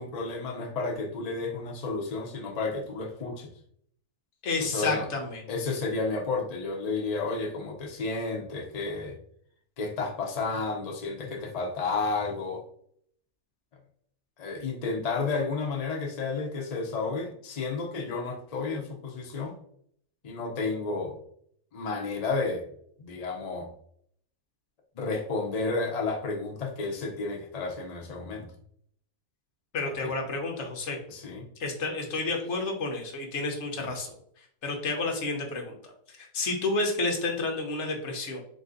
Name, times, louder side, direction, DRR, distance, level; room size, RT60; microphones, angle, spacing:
voice 1, 0.0-3.5 4.7-5.1 5.5-9.2 9.8-12.6 14.4-19.5 20.2-21.2 21.7-22.6 23.0-23.7 24.9-28.5 29.9-30.1 31.1-31.5 33.8-33.9, left 3 dB, 70° left, 1 dB, 0.3 m, -32 dB
voice 2, 4.4-5.4 29.7-31.0 31.6-34.1 34.6-38.4, left 3 dB, 55° left, 2 dB, 1.0 m, -30 dB
4.1 x 2.6 x 3.8 m, 0.66 s
omnidirectional pair, 1.7 m